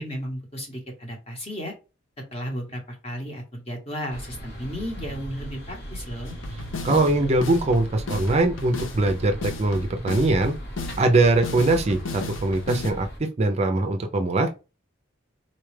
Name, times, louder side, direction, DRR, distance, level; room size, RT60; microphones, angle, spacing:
voice 1, 0.0-1.7 2.3-6.4, equal, 30° left, 2 dB, 1.0 m, -34 dB
sound 1, 4.1-13.2, right 1 dB, 55° left, 1.2 m, -38 dB
sound 2, 6.3-12.9, left 3 dB, 70° left, 0.6 m, -35 dB
voice 2, 6.8-10.5 11.0-14.5, right 2 dB, 30° right, 5 dB, 0.4 m, -22 dB
4.1 x 2.3 x 3.1 m, 0.30 s
head